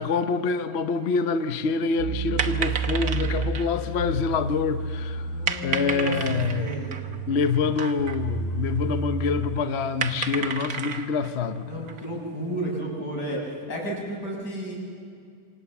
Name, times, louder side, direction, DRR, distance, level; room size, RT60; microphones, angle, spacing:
voice 1, 0.0-5.3 5.6-6.8 7.3-11.9, left 5 dB, 50° left, 0.9 m, -26 dB
sound 1, 2.0-9.5, right 4 dB, 90° right, 5.4 m, -31 dB
sound 2, 2.3-12.8, right 6 dB, 60° right, 1.7 m, -34 dB
voice 2, 5.2-7.0 11.6-13.4 13.7-14.8, right 1 dB, 75° left, 7.3 m, -32 dB
27.5 x 26.0 x 7.2 m
omnidirectional pair, 1.8 m